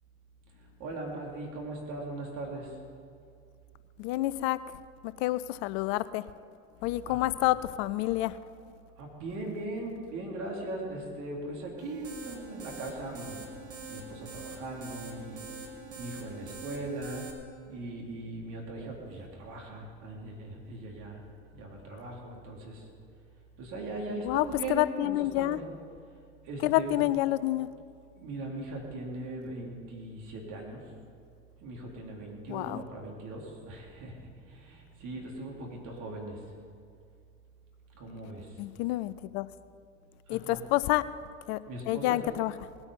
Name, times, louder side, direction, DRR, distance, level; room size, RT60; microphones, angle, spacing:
voice 1, 0.6-2.8 7.1-7.2 9.0-13.4 13.9-15.5 16.0-17.2 17.7-21.2 21.5-22.9 23.6-25.7 26.4-27.0 28.1-30.9 31.6-36.4 38.0-38.6 40.3-40.6 41.7-42.2, right 2 dB, 60° right, -1 dB, 3.8 m, -39 dB
voice 2, 4.0-4.6 5.0-6.2 6.8-8.4 24.2-25.6 26.6-27.7 32.5-32.8 38.6-39.5 40.3-41.1 41.5-41.6 41.9-42.5, left 17 dB, 65° left, 16 dB, 0.6 m, -28 dB
sound 1, 11.8-17.3, right 3 dB, 40° right, 2.9 m, -44 dB
19.5 x 8.9 x 5.6 m, 2.3 s
hypercardioid pair, 75°, 35 cm